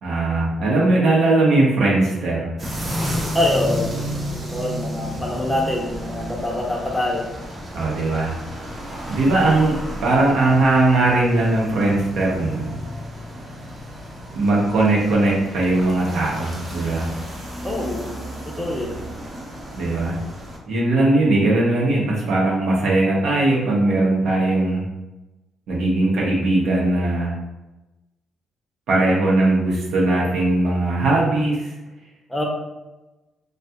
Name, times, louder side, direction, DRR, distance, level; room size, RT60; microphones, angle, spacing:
voice 1, 0.0-2.5 7.7-8.3 9.1-12.8 14.3-17.1 19.7-20.2 20.7-24.8 25.7-27.3 28.9-31.6, right 2 dB, 75° right, -4 dB, 0.8 m, -19 dB
sound 1, 2.6-20.6, equal, 35° right, 0.7 m, -32 dB
voice 2, 3.3-3.9 4.5-7.3 17.6-18.0 18.5-19.0 32.3-32.4, left 1 dB, 10° left, -2 dB, 0.6 m, -24 dB
2.3 x 2.3 x 2.7 m, 1.0 s
cardioid pair, 90°, 0 cm